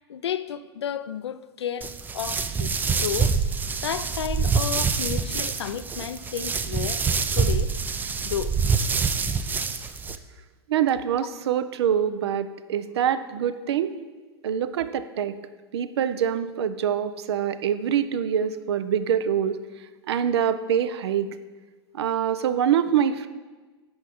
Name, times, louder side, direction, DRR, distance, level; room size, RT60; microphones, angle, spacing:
voice 1, 0.1-2.8 3.0-3.4 3.8-7.0 7.3-7.7 8.2-8.5, left 9 dB, 85° left, 0.4 m, -32 dB
sound 1, 1.8-10.2, right 5 dB, 15° right, 0.3 m, -26 dB
voice 2, 10.7-13.9 14.4-15.3 15.7-19.6 20.1-21.3 21.9-23.3, right 9 dB, 75° right, 0.5 m, -25 dB
10.5 x 6.3 x 3.5 m
hypercardioid pair, 110°, 14 cm